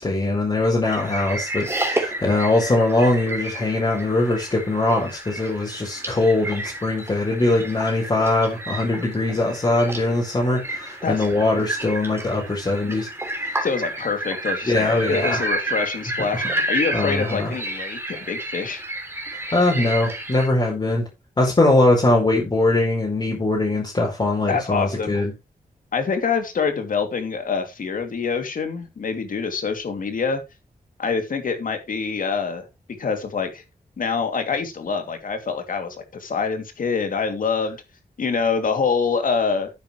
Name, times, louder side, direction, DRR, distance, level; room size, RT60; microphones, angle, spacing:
voice 1, 0.0-13.1 13.4-13.6 14.6-15.4 16.4-16.5 16.9-17.5 19.5-21.1 21.4-25.3, left 2 dB, 30° left, 4.8 m, -21 dB
sound 1, 0.8-20.5, right 2 dB, 15° right, 3.3 m, -31 dB
voice 2, 13.6-18.8 24.5-25.2 25.9-30.4 31.0-32.7 33.0-33.6 34.0-37.8 38.2-39.7, left 5 dB, 70° left, 2.9 m, -25 dB
11.5 x 9.7 x 3.3 m
wide cardioid pair, 150°, 15 cm